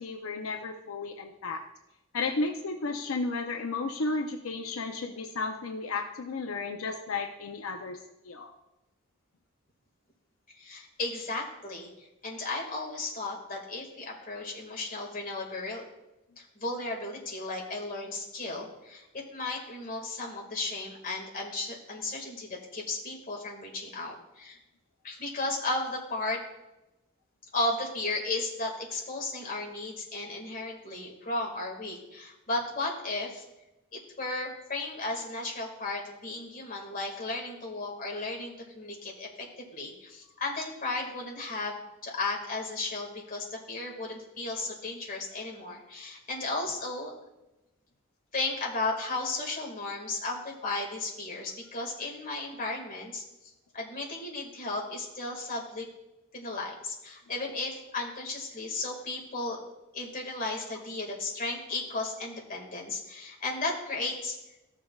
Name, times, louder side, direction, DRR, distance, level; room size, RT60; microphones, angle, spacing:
voice 1, 0.0-1.6 2.1-8.0 8.2-8.5 61.7-61.8, left 3 dB, 85° left, 4 dB, 0.6 m, -33 dB
voice 2, 10.5-11.9 12.2-15.8 16.4-19.0 19.3-24.6 25.0-26.4 27.5-33.4 33.9-47.1 48.3-53.2 53.7-55.9 56.3-59.6 59.9-64.4, left 2 dB, 40° left, -1 dB, 2.0 m, -35 dB
15.0 x 6.6 x 2.4 m, 0.97 s
head